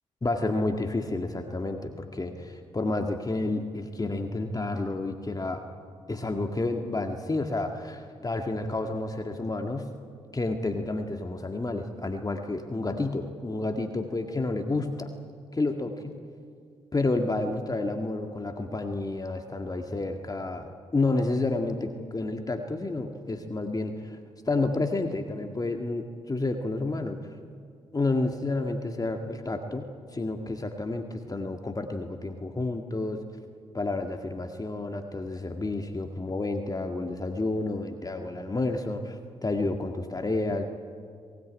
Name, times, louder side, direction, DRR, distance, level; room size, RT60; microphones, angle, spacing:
voice 1, 0.2-5.6 6.1-9.9 10.3-15.1 15.5-16.2 16.9-24.2 24.5-27.4 27.9-33.2 33.7-40.6, left 2 dB, 25° left, 4 dB, 2.0 m, -30 dB
22.5 x 17.5 x 9.6 m, 2.1 s
hypercardioid pair, 40°, 15 cm